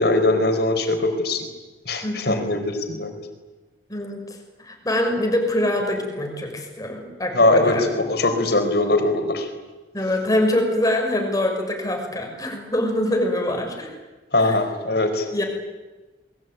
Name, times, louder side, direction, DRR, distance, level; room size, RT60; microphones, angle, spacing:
voice 1, 0.0-1.4 1.8-3.1 7.3-9.5 14.3-15.3, left 2 dB, 60° left, 7 dB, 4.8 m, -21 dB
voice 2, 2.0-2.4 3.9-4.2 4.6-7.8 9.9-14.0 14.4-14.6 15.3-15.4, left 1 dB, 20° left, 3 dB, 6.0 m, -24 dB
28.5 x 22.0 x 9.4 m, 1.2 s
head